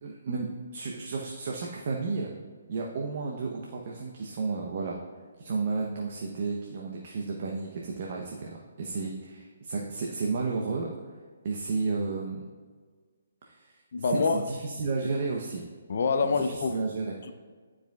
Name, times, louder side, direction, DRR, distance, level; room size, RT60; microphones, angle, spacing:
voice 1, 0.0-2.3 2.7-5.0 5.4-10.9 11.4-12.5 13.4-13.8 14.1-15.6 16.2-17.1, right 4 dB, 50° right, -1 dB, 0.8 m, -32 dB
voice 2, 13.9-14.4 15.9-16.8 17.2-17.3, left 4 dB, 60° left, 7 dB, 0.5 m, -26 dB
11.5 x 4.9 x 2.4 m, 1.5 s
hypercardioid pair, 150°, 0 cm